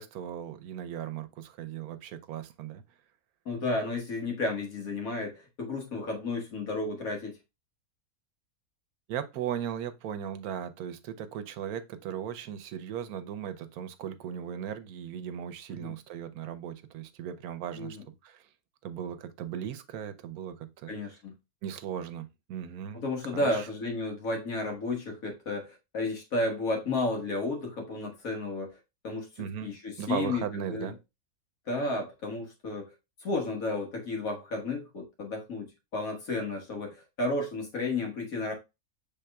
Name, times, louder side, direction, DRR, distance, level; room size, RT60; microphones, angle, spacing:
voice 1, 0.0-2.8 9.1-18.4 18.8-20.9 21.6-23.0 23.3-23.7 29.4-29.7 30.0-31.0, right 9 dB, 85° right, 1.1 m, -37 dB
voice 2, 3.5-7.3 15.7-15.9 17.8-18.0 20.9-21.3 22.9-28.7 29.0-30.9 31.7-32.9 33.2-38.5, left 2 dB, 70° left, 1.8 m, -32 dB
6.7 x 3.5 x 2.2 m
omnidirectional pair, 1.5 m